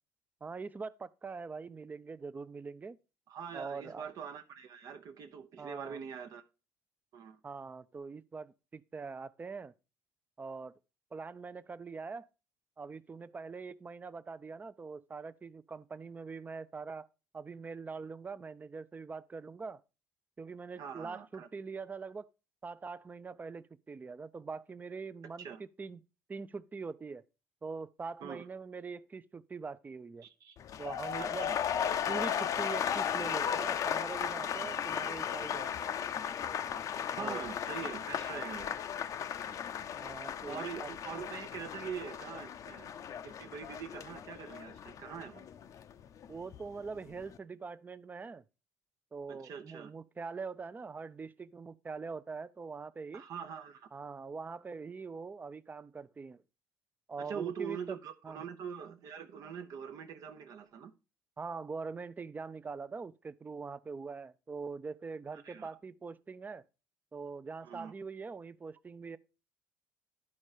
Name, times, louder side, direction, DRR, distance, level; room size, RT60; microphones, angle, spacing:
voice 1, 0.4-3.0 3.5-4.0 5.6-6.0 7.4-9.7 10.4-10.8 11.1-12.3 12.8-17.1 17.3-19.8 20.4-22.3 22.6-26.0 26.3-27.2 27.6-30.3 30.8-31.5 32.1-35.9 37.2-37.4 40.0-40.9 46.3-48.4 49.1-53.2 53.9-56.4 57.1-58.0 58.2-58.4 61.4-66.6 67.1-69.2, right 4 dB, 25° right, 0.5 m, -43 dB
voice 2, 3.3-6.4 7.1-7.4 20.8-21.5 25.4-25.6 28.2-28.5 30.2-30.6 31.2-31.6 37.1-38.8 40.5-42.9 43.2-45.5 49.3-49.9 53.1-53.9 57.2-60.9 65.3-65.7 67.6-67.9, right 7 dB, 55° right, 0.8 m, -43 dB
sound 1, 30.6-46.6 46.9-47.4, left 8 dB, 55° left, 0.6 m, -36 dB
10.5 x 4.4 x 4.9 m
hypercardioid pair, 70°, 7 cm